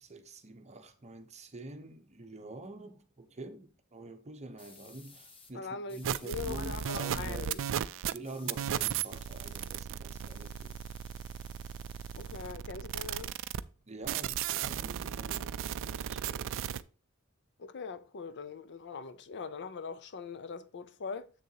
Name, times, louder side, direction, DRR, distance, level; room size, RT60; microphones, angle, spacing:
voice 1, 0.0-7.5 7.9-10.7 13.9-16.7, right 2 dB, 30° right, 0.8 m, -46 dB
sound 1, 4.6-5.5 5.9-7.8 8.0-12.6 12.9-13.9, left 3 dB, 25° left, 1.0 m, -58 dB
voice 2, 5.5-7.6 12.2-13.3 17.6-21.3, left 5 dB, 55° left, 0.6 m, -41 dB
sound 2, 6.0-8.2 8.5-13.6 14.0-16.8, right 9 dB, 60° right, 0.4 m, -36 dB
7.5 x 6.7 x 2.9 m
head